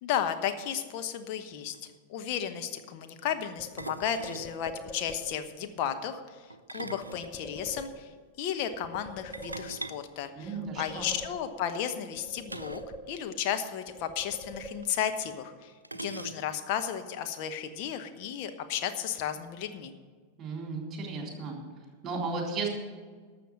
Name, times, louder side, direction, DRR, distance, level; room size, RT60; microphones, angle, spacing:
voice 1, 0.0-1.7 2.1-6.4 6.7-8.1 8.4-12.8 13.1-15.7 16.0-19.9, left 9 dB, 45° left, 7 dB, 1.1 m, -33 dB
sound 1, 1.5-1.6 1.7-2.0 3.8-4.6 6.5-7.9 9.3-11.0 12.5-13.0 13.2-13.3 13.7-13.8 14.8-14.9 15.8-16.7, right 2 dB, 85° right, 0.4 m, -42 dB
sound 2, 3.6-5.6 7.0-8.4 8.7-10.1 10.4-11.8 12.2-13.5 13.9-15.2, left 1 dB, 20° left, 0.9 m, -46 dB
voice 2, 10.3-11.0 20.4-21.6 22.0-22.7, right 4 dB, 25° right, 1 dB, 3.6 m, -34 dB
12.5 x 7.0 x 7.7 m, 1.5 s
figure-of-eight pair, 90°, 0 cm